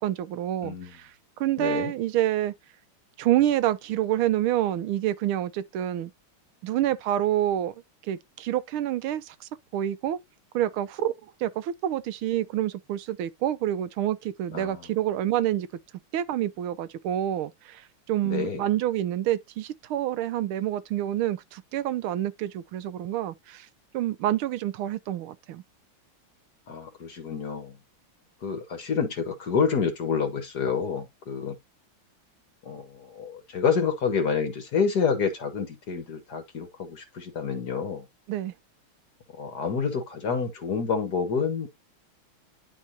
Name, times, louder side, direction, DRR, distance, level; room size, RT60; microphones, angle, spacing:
voice 1, 0.0-1.1 1.4-2.5 3.2-6.1 6.6-7.7 8.1-10.2 10.5-15.7 16.1-23.7 23.9-25.6 38.3-38.5, right 12 dB, 85° right, 1.6 m, -27 dB
voice 2, 1.6-1.9 14.5-14.8 18.2-18.6 26.7-27.8 28.4-31.6 32.7-38.0 39.4-41.7, left 6 dB, 55° left, 1.8 m, -28 dB
10.5 x 4.5 x 2.8 m
omnidirectional pair, 2.3 m